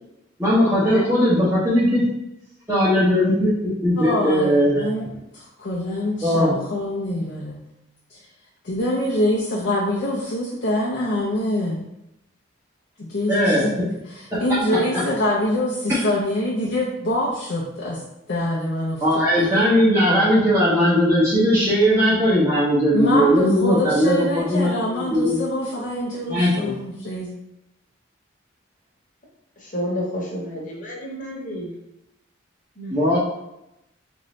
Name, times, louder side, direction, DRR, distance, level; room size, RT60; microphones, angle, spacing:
voice 1, 0.4-2.0 2.7-3.5 3.8-4.9 6.2-6.5 13.3-13.6 19.0-25.4 26.3-26.7 32.9-33.2, equal, 15° right, -11 dB, 0.9 m, -18 dB
voice 2, 0.9-1.3 23.0-23.2 29.6-31.7 32.8-33.0, equal, 40° left, -3 dB, 1.0 m, -30 dB
voice 3, 4.0-7.6 8.1-8.2 8.6-11.8 13.0-13.8 14.1-18.0 18.3-19.6 22.9-27.3, left 1 dB, 60° left, -5 dB, 0.6 m, -25 dB
3.9 x 2.6 x 3.1 m, 0.87 s
head